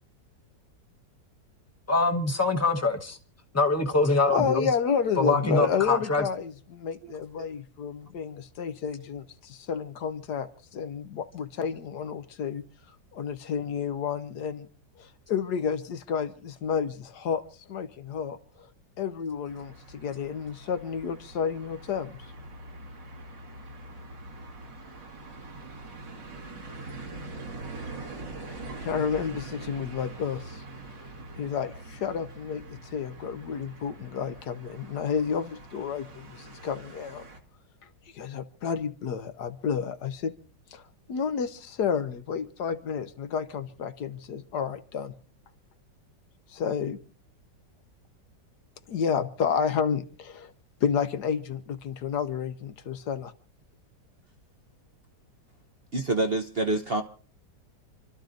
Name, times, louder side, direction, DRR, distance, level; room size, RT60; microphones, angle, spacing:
voice 1, 1.9-3.2 3.5-4.7 5.2-6.2, left 3 dB, 10° left, 0.9 m, -24 dB
voice 2, 4.3-12.6 13.1-14.7 15.0-18.4 19.0-22.2 28.5-30.6 31.4-37.2 38.1-40.3 40.7-40.8 41.1-45.1 46.5-47.0 48.9-50.5 50.8-53.3, left 7 dB, 70° left, 1.4 m, -30 dB
sound 1, 19.5-37.4, right 2 dB, 85° right, 2.6 m, -43 dB
voice 3, 55.9-57.0, right 2 dB, 45° right, 0.8 m, -27 dB
29.0 x 13.0 x 2.6 m
omnidirectional pair, 1.9 m